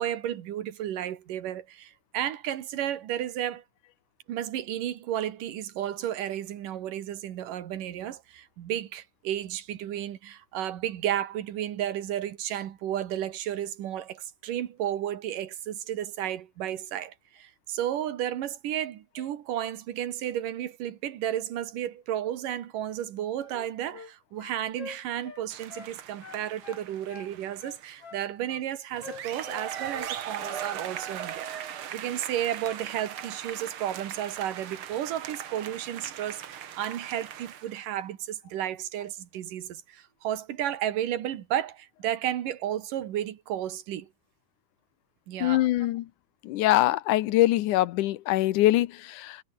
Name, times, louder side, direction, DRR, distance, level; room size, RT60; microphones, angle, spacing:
voice 1, 0.0-3.6 4.3-44.1 45.3-45.6, right 11 dB, 90° right, 3.2 m, -33 dB
sound 1, 23.4-24.1 24.4-25.9 26.2-27.3 27.6-28.7 29.0-30.1 30.4-30.6, left 6 dB, 50° left, 3.9 m, -46 dB
sound 2, 25.5-28.0 28.9-37.9, right 9 dB, 50° right, 1.9 m, -39 dB
voice 2, 45.4-46.1 46.4-49.4, left 15 dB, 80° left, 2.3 m, -23 dB
omnidirectional pair, 3.7 m